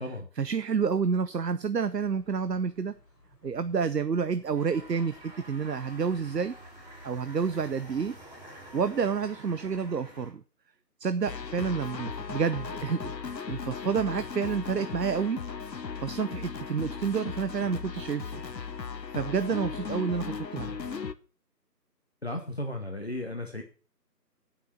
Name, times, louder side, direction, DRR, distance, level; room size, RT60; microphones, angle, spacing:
voice 1, 0.4-2.9 3.4-6.5 7.0-8.2 8.7-10.4 11.0-13.1 13.5-15.4 16.0-18.4 19.1-20.8, right 6 dB, 75° right, 12 dB, 0.8 m, -29 dB
sound 1, 2.0-7.3, left 2 dB, 25° left, 5.1 m, -62 dB
sound 2, 4.5-10.3, equal, 25° right, 4.3 m, -48 dB
sound 3, 11.3-21.1, left 5 dB, 80° left, 0.9 m, -37 dB
voice 2, 22.2-23.6, left 1 dB, 40° left, 3 dB, 1.1 m, -35 dB
9.3 x 6.3 x 7.6 m, 0.39 s
figure-of-eight pair, 170°, 49 cm